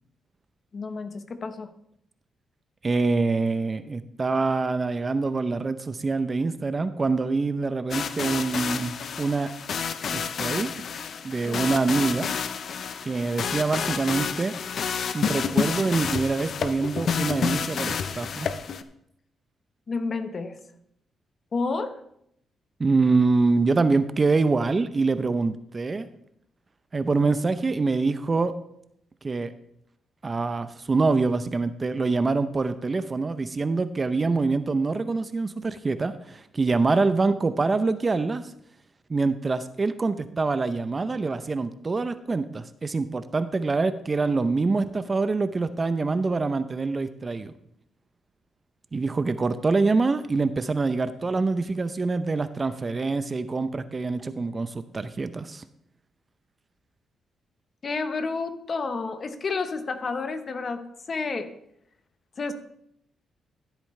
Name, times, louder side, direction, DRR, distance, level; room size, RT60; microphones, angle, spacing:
voice 1, 0.7-1.7 11.4-11.8 19.9-20.6 21.5-22.0 57.8-60.8 61.1-61.5 62.4-62.5, left 4 dB, 45° left, 9 dB, 1.0 m, -30 dB
voice 2, 2.8-9.5 10.1-10.7 11.2-12.3 13.0-14.5 15.1-18.5 22.8-26.1 26.9-28.5 29.2-29.5 30.2-38.5 39.1-47.5 48.9-55.6, right 3 dB, 30° right, 12 dB, 0.6 m, -25 dB
sound 1, 7.9-18.8, left 6 dB, 60° left, 0.6 m, -29 dB
13.5 x 8.1 x 3.2 m, 0.74 s
cardioid pair, 90°, 0 cm